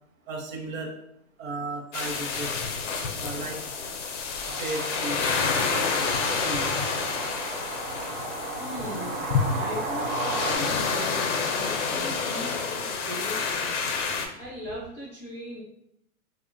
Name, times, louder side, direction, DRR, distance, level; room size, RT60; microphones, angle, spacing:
voice 1, 0.3-0.9 1.4-2.6 3.2-3.6 4.6-5.3 6.4-6.7, right 2 dB, 70° right, 1 dB, 0.8 m, -34 dB
sound 1, 1.9-14.3, left 5 dB, 55° left, 0.5 m, -29 dB
sound 2, 4.4-10.6, right 2 dB, 40° right, 0.5 m, -34 dB
voice 2, 8.6-9.2 9.5-13.8 14.4-15.6, equal, 5° left, -10 dB, 0.5 m, -38 dB
2.9 x 2.1 x 2.4 m, 0.78 s
hypercardioid pair, 160°, 43 cm